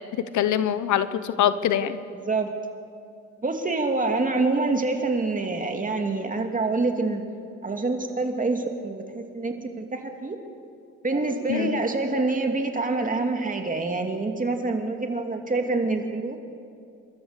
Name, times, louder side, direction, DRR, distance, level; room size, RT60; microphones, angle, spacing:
voice 1, 0.2-2.0 11.5-11.8, left 10 dB, 75° left, 13 dB, 1.0 m, -24 dB
voice 2, 3.4-7.2 7.6-10.4 11.0-16.4, right 3 dB, 25° right, 4 dB, 2.6 m, -26 dB
29.5 x 13.5 x 6.8 m, 2.4 s
cardioid pair, 90°, 30 cm